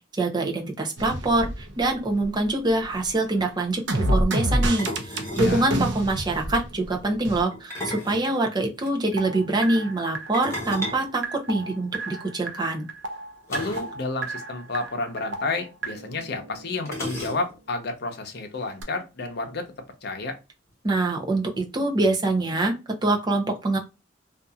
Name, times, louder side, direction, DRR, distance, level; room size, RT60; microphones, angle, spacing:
voice 1, 0.2-12.9 20.8-22.7 23.0-23.8, right 2 dB, 20° right, 0.7 m, -25 dB
sound 1, 1.0-2.5 2.8-7.4 9.1-17.1 18.8-18.9, right 1 dB, 65° right, 0.6 m, -29 dB
sound 2, 2.5-2.6 2.7-3.0 4.8-5.6 7.5-8.9 10.3-12.0 13.5-14.0 14.2-14.3 14.7-14.8 15.8-15.9 16.9-17.7, left 1 dB, 15° left, 1.1 m, -35 dB
voice 2, 5.3-5.7 13.5-19.7 20.0-20.3, left 3 dB, 55° left, 0.7 m, -31 dB
2.7 x 2.5 x 2.3 m
head